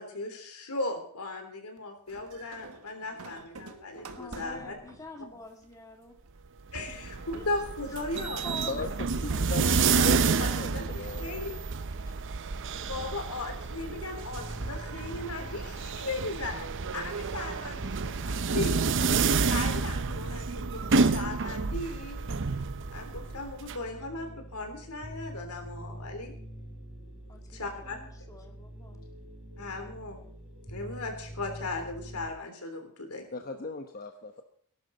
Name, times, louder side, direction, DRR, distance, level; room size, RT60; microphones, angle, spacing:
voice 1, 0.0-4.7 6.7-8.4 8.8-8.9 9.6-11.5 12.9-18.8 19.1-22.2 22.9-26.3 27.5-28.0 29.6-30.2 30.7-33.3, left 2 dB, 90° left, 4 dB, 3.4 m, -37 dB
sound 1, 2.1-11.2 11.6-12.3 13.0-14.1 14.6-16.7, right 2 dB, 75° right, 1.4 m, -48 dB
voice 2, 4.2-6.2 6.9-7.0 7.3-7.4 7.9-8.0 8.4-8.9 9.3-10.4 27.3-29.0, left 2 dB, 15° left, 2 dB, 2.1 m, -47 dB
sound 2, 6.7-23.8, right 4 dB, 60° right, 0.7 m, -29 dB
voice 3, 9.2-9.7 10.0-11.4 33.3-34.4, left 3 dB, 40° left, 5 dB, 1.1 m, -37 dB
sound 3, 14.2-32.3, equal, ahead, 3.0 m, -45 dB
18.5 x 11.5 x 4.1 m, 0.63 s
head